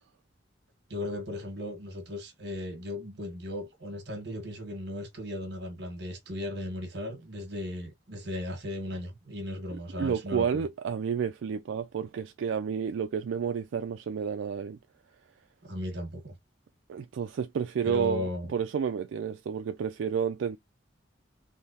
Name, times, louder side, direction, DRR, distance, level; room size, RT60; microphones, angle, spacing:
voice 1, 0.9-10.6 15.6-16.3 17.8-18.5, left 1 dB, 60° right, 1.3 m, -36 dB
voice 2, 10.0-14.8 16.9-20.6, right 7 dB, 90° right, 0.3 m, -30 dB
3.5 x 2.7 x 2.6 m
head